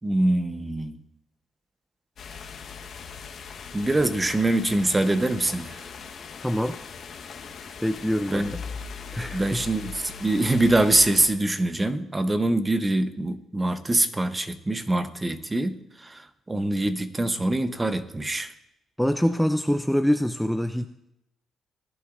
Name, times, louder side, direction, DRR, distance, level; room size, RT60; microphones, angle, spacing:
voice 1, 0.0-1.0 3.7-5.7 8.3-8.5 9.3-15.8 16.0-16.2 16.5-18.5, right 2 dB, 20° right, 0.9 m, -24 dB
sound 1, 2.2-11.3, left 6 dB, 60° left, 1.2 m, -40 dB
voice 2, 6.4-6.8 7.8-8.6 9.1-9.6 19.0-20.9, equal, ahead, 0.5 m, -25 dB
19.0 x 11.5 x 2.5 m
cardioid pair, 90°, 0 cm